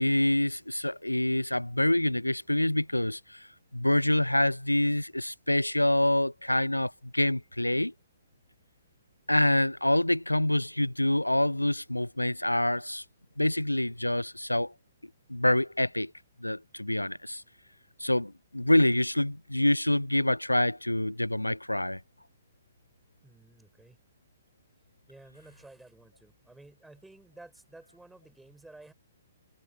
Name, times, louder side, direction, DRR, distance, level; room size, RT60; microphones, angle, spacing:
voice 1, 0.0-3.5 3.7-7.9 9.3-13.0 13.4-14.7 15.3-16.1 16.4-17.4 18.0-22.0, left 1 dB, 85° left, 0.5 m, -26 dB
voice 2, 23.2-24.0 25.1-28.9, right 2 dB, 5° right, 5.9 m, -53 dB
figure-of-eight pair, 120°, 0 cm